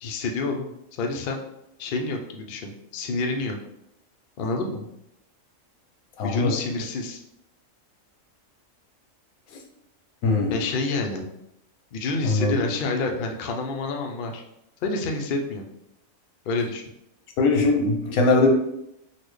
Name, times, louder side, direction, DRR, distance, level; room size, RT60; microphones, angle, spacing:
voice 1, 0.0-0.7 1.0-1.4 1.8-3.6 4.4-4.9 6.2-7.2 10.5-11.3 11.9-14.4 14.8-15.6 16.5-16.8, left 3 dB, 70° left, 2 dB, 0.5 m, -28 dB
voice 2, 6.2-6.6 10.2-10.6 12.2-12.6 17.4-18.5, left 3 dB, 90° left, 2 dB, 1.1 m, -20 dB
4.0 x 2.0 x 3.1 m, 0.81 s
omnidirectional pair, 1.4 m